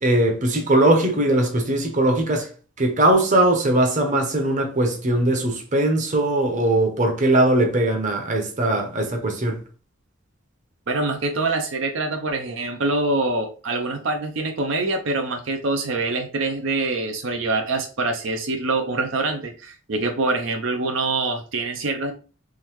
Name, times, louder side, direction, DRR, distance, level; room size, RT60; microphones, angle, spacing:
voice 1, 0.0-2.5 2.8-9.6, right 1 dB, 40° right, 0.8 m, -20 dB
voice 2, 10.9-22.1, right 3 dB, 75° right, 0.6 m, -25 dB
3.8 x 3.1 x 3.0 m
head